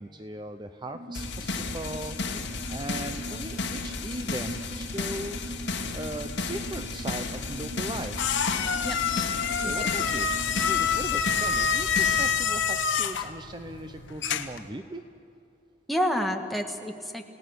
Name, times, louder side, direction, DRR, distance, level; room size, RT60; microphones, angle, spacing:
voice 1, 0.0-2.2 2.7-5.4 5.9-8.3 9.6-10.3 10.6-15.0, right 1 dB, 25° right, 7 dB, 0.6 m, -38 dB
sound 1, 0.9-10.9, right 1 dB, 90° right, 2.6 m, -41 dB
sound 2, 1.1-12.3, left 3 dB, 70° left, 1.9 m, -34 dB
sound 3, 7.4-14.7, left 6 dB, 85° left, 1.1 m, -27 dB
voice 2, 9.6-10.1 15.9-17.2, equal, ahead, 2 dB, 1.4 m, -29 dB
29.0 x 17.5 x 6.4 m, 2.8 s
head